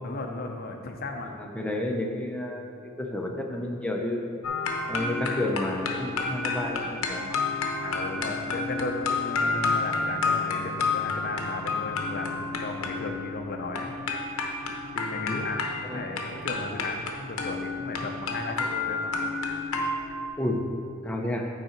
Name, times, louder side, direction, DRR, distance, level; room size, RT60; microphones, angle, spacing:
voice 1, 0.0-1.4 7.8-13.9 14.9-19.1, left 2 dB, 45° left, 3 dB, 0.6 m, -35 dB
voice 2, 1.3-2.7 3.0-4.3 4.9-7.4 15.1-15.5 15.9-16.0 20.4-20.7 21.0-21.5, left 1 dB, 5° left, 1 dB, 0.6 m, -31 dB
sound 1, 4.4-20.3, left 3 dB, 85° left, 0.9 m, -30 dB
8.1 x 4.9 x 4.4 m, 2.3 s
head